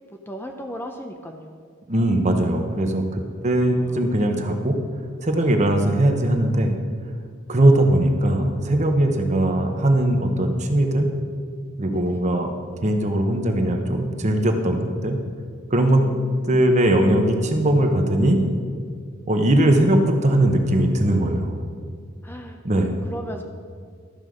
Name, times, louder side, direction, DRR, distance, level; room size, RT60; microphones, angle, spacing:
voice 1, 0.1-1.7 3.8-4.7 11.9-12.2 16.0-16.7 22.2-22.6 23.1-23.4, equal, 10° left, 3 dB, 0.6 m, -37 dB
voice 2, 1.9-4.8 5.2-6.7 7.5-11.1 11.8-12.5 12.8-15.2 15.7-16.1 16.5-18.5 19.3-21.6 22.6-23.0, right 1 dB, 35° right, 4 dB, 0.9 m, -20 dB
13.0 x 5.4 x 6.4 m, 2.1 s
head